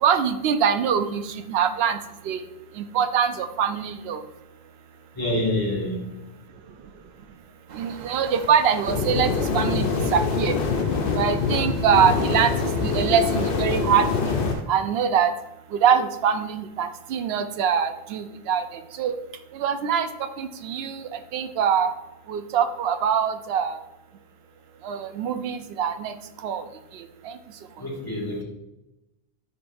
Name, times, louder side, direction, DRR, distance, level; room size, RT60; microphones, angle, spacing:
voice 1, 0.0-2.0 2.2-2.4 2.8-4.2 7.7-9.9 10.1-10.6 11.1-12.5 12.8-14.4 14.7-15.3 15.7-19.1 19.5-20.1 20.4-21.9 22.3-23.8 24.8-26.1 26.4-26.6 26.9-27.4, right 7 dB, 80° right, 9 dB, 0.8 m, -23 dB
voice 2, 5.2-6.3 27.8-28.4, left 1 dB, 20° left, -5 dB, 1.9 m, -27 dB
sound 1, 7.7-14.6, right 5 dB, 50° right, 0.7 m, -39 dB
sound 2, 8.9-14.5, left 5 dB, 65° left, 0.7 m, -24 dB
10.0 x 4.2 x 2.6 m, 0.95 s
omnidirectional pair, 1.0 m